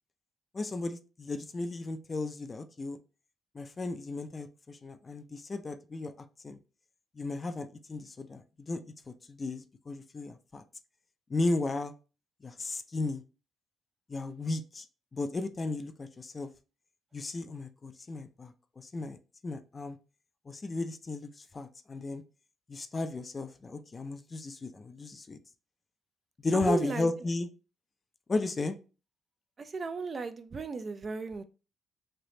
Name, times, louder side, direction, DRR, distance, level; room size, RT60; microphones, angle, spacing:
voice 1, 0.5-3.0 3.5-6.1 6.4-6.6 7.2-8.8 9.1-10.6 11.3-11.9 12.4-13.2 14.1-14.8 15.1-16.5 17.1-19.2 19.4-20.0 20.5-22.2 22.7-25.4 26.4-27.5 28.3-28.8, left 2 dB, 30° left, 0.4 m, -34 dB
voice 2, 26.5-27.1 29.6-31.4, right 4 dB, 40° right, 0.4 m, -35 dB
3.3 x 3.0 x 2.7 m
cardioid pair, 90°, 0 cm